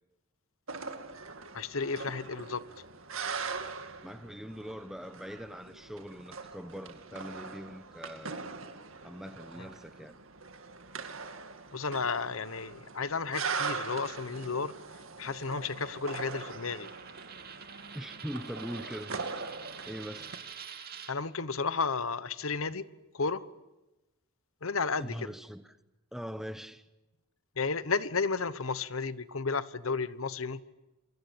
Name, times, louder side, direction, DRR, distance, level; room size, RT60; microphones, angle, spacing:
sound 1, 0.7-20.4, right 5 dB, 65° right, 2.2 m, -41 dB
voice 1, 1.5-2.6 11.7-14.7 15.2-16.9 21.1-22.8 23.1-23.5 24.6-25.3 27.6-30.6, left 4 dB, 70° left, 1.1 m, -33 dB
voice 2, 4.0-8.4 9.0-10.2 17.9-19.1 19.9-20.3 25.0-25.6 26.1-26.8, equal, ahead, 0.9 m, -42 dB
Coin (dropping), 15.6-21.1, right 7 dB, 45° right, 2.7 m, -47 dB
28.0 x 24.0 x 8.6 m
head